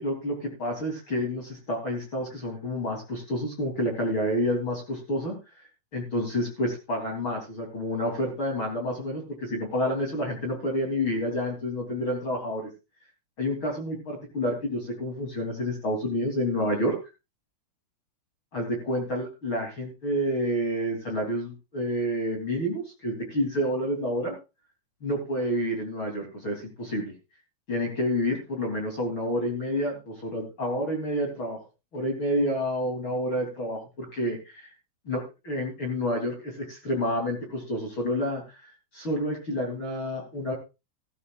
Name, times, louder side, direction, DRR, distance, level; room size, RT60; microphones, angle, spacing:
voice 1, 0.0-5.3 5.9-12.7 13.4-17.0 18.5-24.3 25.0-27.1 27.7-31.6 31.9-34.7 35.1-40.5, equal, 30° left, 1 dB, 3.7 m, -29 dB
17.0 x 13.5 x 2.5 m, 0.27 s
omnidirectional pair, 4.7 m